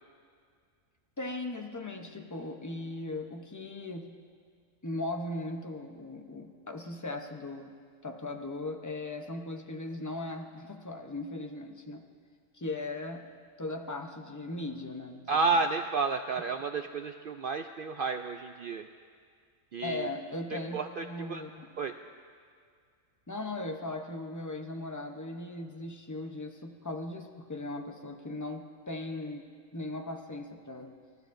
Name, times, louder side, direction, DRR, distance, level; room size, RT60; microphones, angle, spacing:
voice 1, 1.2-4.2 4.8-7.7 8.0-12.0 12.5-13.3 13.6-15.6 19.8-21.7 23.3-30.9, left 2 dB, 20° left, 4 dB, 0.6 m, -38 dB
voice 2, 15.3-18.9 19.7-20.1 20.5-21.4 21.8-21.9, right 4 dB, 70° right, 7 dB, 0.5 m, -31 dB
29.0 x 13.0 x 2.6 m, 2.1 s
omnidirectional pair, 1.4 m